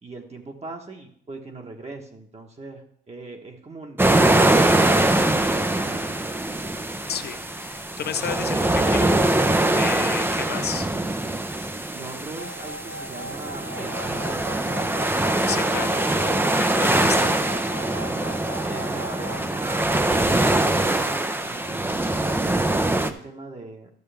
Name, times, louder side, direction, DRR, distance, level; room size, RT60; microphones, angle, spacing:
voice 1, 0.0-6.2 11.9-15.1 17.0-17.4 18.0-18.3 18.6-23.9, right 3 dB, 35° right, 1 dB, 1.3 m, -39 dB
sound 1, 4.0-23.1, right 1 dB, 10° right, 0.7 m, -23 dB
voice 2, 7.1-10.9 15.5-16.0 16.6-17.3, left 8 dB, 55° left, 12 dB, 0.7 m, -32 dB
sound 2, 12.4-19.4, equal, 65° right, 1.0 m, -39 dB
12.0 x 6.8 x 3.4 m, 0.66 s
cardioid pair, 85°, 20 cm